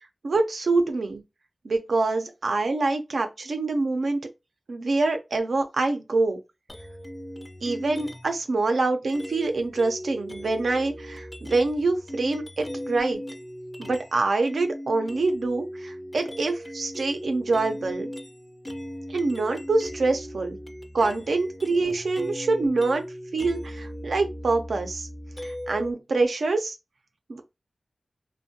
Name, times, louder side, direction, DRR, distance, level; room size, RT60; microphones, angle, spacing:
voice 1, 0.2-1.2 1.6-4.3 4.7-6.4 7.6-13.2 13.8-18.1 19.1-20.6 20.9-23.0 23.3-25.1 25.4-26.8 27.3-27.4, right 3 dB, 90° right, 0.4 m, -25 dB
sound 1, 6.7-8.4 9.1-14.2 14.5-25.9, equal, 20° left, 0.4 m, -38 dB
2.4 x 2.1 x 2.6 m
wide cardioid pair, 65°, 0 cm